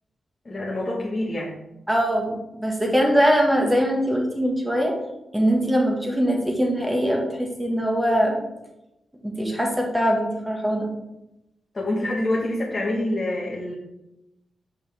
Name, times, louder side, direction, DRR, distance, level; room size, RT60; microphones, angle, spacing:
voice 1, 0.4-1.5 11.7-13.7, left 1 dB, 35° left, -6 dB, 1.5 m, -26 dB
voice 2, 1.9-4.9 5.3-8.4 9.2-10.9, equal, 10° right, 0 dB, 1.7 m, -22 dB
7.0 x 5.3 x 3.5 m, 0.92 s
cardioid pair, 85°, 0 cm